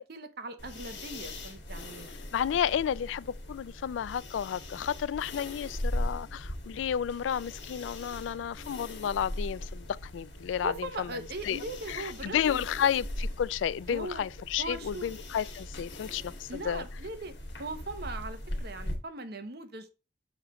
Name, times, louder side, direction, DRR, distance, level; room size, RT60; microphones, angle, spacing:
voice 1, 0.0-2.1 10.6-12.6 13.9-14.2 14.6-15.1 16.5-17.3 17.6-19.9, right 2 dB, 55° right, 0.9 m, -39 dB
sound 1, 0.6-19.0, left 1 dB, 65° left, 1.8 m, -40 dB
voice 2, 2.3-11.1 11.4-16.8, left 8 dB, 85° left, 0.3 m, -32 dB
sound 2, 5.5-12.2, equal, 40° left, 3.5 m, -63 dB
6.4 x 4.9 x 3.0 m
head